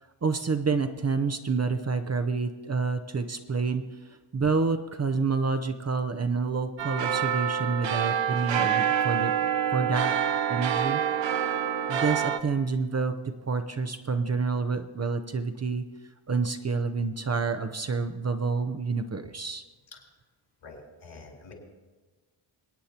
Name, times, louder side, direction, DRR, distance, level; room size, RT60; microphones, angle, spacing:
voice 1, 0.2-10.1 10.5-11.0 11.9-13.1 13.5-15.8 16.3-19.6, right 4 dB, 30° right, 8 dB, 0.6 m, -28 dB
sound 1, 6.8-12.4, right 8 dB, 60° right, 0.8 m, -27 dB
voice 2, 20.6-21.5, left 3 dB, 70° left, 0 dB, 3.9 m, -47 dB
24.0 x 9.3 x 2.9 m, 1.3 s
cardioid pair, 90°, 50 cm